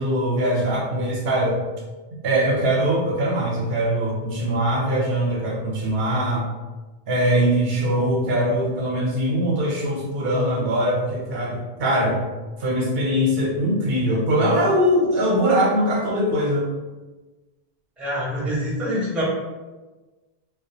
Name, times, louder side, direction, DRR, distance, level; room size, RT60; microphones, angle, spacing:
voice 1, 0.0-1.6 2.2-6.5 7.1-12.2 12.6-16.7, equal, 70° right, -3 dB, 0.8 m, -22 dB
voice 2, 18.0-19.2, equal, ahead, -6 dB, 0.5 m, -25 dB
2.2 x 2.2 x 2.7 m, 1.2 s
omnidirectional pair, 1.0 m